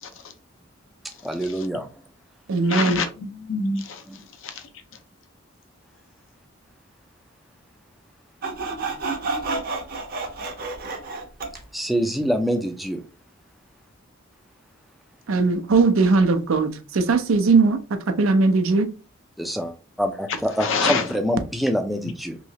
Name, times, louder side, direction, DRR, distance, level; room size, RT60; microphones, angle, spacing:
voice 1, 0.0-0.3 1.4-1.7 2.7-4.7 20.6-21.1, left 4 dB, 75° left, 0.6 m, -27 dB
voice 2, 1.2-1.9 4.1-4.2 11.7-13.0 19.4-22.4, equal, ahead, 0.3 m, -25 dB
voice 3, 2.5-3.0 15.3-18.9, right 4 dB, 85° right, 0.5 m, -19 dB
Sawing, 8.4-11.6, right 3 dB, 45° right, 0.7 m, -30 dB
3.1 x 2.7 x 2.7 m
head